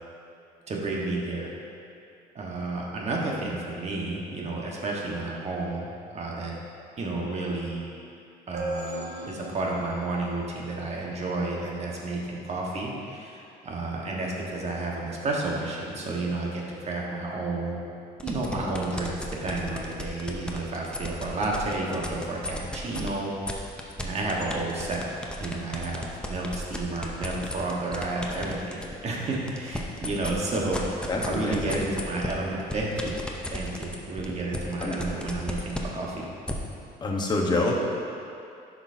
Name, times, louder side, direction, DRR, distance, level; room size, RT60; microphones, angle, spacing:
voice 1, 0.7-1.5 2.3-6.6 7.0-7.9 8.5-17.8 18.2-19.2 19.4-23.3 23.6-23.7 24.0-25.1 25.4-33.2 33.5-36.3, right 2 dB, 40° right, -2 dB, 1.4 m, -31 dB
sound 1, 8.5-12.1, right 1 dB, 75° right, 1.1 m, -39 dB
sound 2, 18.2-23.1 23.4-28.9 29.3-36.5, left 1 dB, 5° left, 0.7 m, -34 dB
voice 2, 31.1-31.8 34.8-35.0 37.0-37.7, left 2 dB, 25° left, -1 dB, 1.1 m, -26 dB
9.9 x 5.9 x 2.7 m, 2.5 s
cardioid pair, 110°, 17 cm